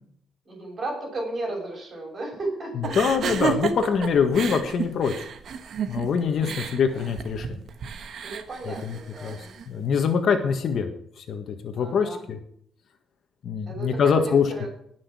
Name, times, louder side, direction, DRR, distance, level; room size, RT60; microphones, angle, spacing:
voice 1, 0.5-3.0 6.3-6.5 8.2-9.5 11.7-12.3 13.7-14.7, right 2 dB, 35° right, -1 dB, 7.0 m, -34 dB
sound 1, 2.8-9.7, right 7 dB, 55° right, 1.3 m, -32 dB
voice 2, 2.9-5.3 5.9-7.5 8.6-9.4 9.7-10.9 11.2-12.4 13.4-14.7, left 6 dB, 55° left, 6 dB, 1.7 m, -24 dB
19.0 x 6.4 x 6.3 m, 0.67 s
cardioid pair, 140°, 0 cm